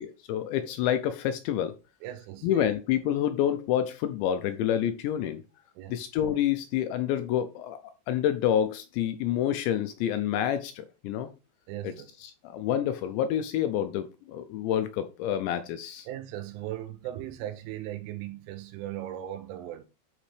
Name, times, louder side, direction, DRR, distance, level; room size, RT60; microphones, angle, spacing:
voice 1, 0.0-1.7 2.4-5.4 5.9-7.8 8.1-11.3 11.8-11.9 12.2-16.1, left 10 dB, 80° left, 2.7 m, -28 dB
voice 2, 2.0-2.7 5.8-6.0 11.7-12.1 16.1-19.8, right 12 dB, 90° right, 3.5 m, -38 dB
10.5 x 5.2 x 3.3 m
omnidirectional pair, 5.7 m